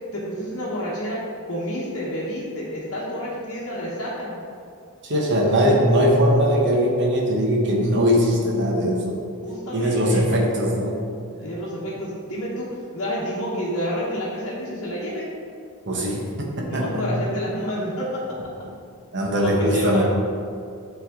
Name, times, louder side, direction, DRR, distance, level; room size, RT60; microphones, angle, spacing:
voice 1, 0.1-1.2 1.5-4.4 9.4-10.3 11.4-15.3 16.6-18.5 19.4-20.0, equal, 65° left, -9 dB, 1.0 m, -29 dB
voice 2, 5.0-9.2 9.7-11.0 15.9-17.1 19.1-20.0, equal, 55° right, -2 dB, 1.1 m, -20 dB
8.5 x 3.4 x 3.7 m, 2.3 s
head